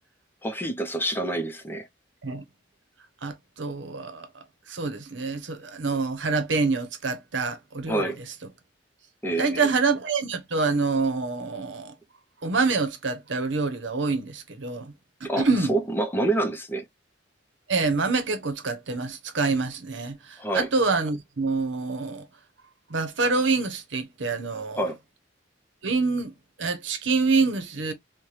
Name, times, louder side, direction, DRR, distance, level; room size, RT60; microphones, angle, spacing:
voice 1, 0.4-1.9 7.9-8.2 9.2-9.7 15.2-16.8 20.4-20.7 24.7-25.0, right 2 dB, 10° left, 0.6 m, -27 dB
voice 2, 3.2-8.1 9.4-11.9 12.4-14.9 15.2-15.7 17.7-22.3 22.9-24.9 25.8-27.9, right 4 dB, 75° right, 0.9 m, -26 dB
4.4 x 2.2 x 3.1 m
head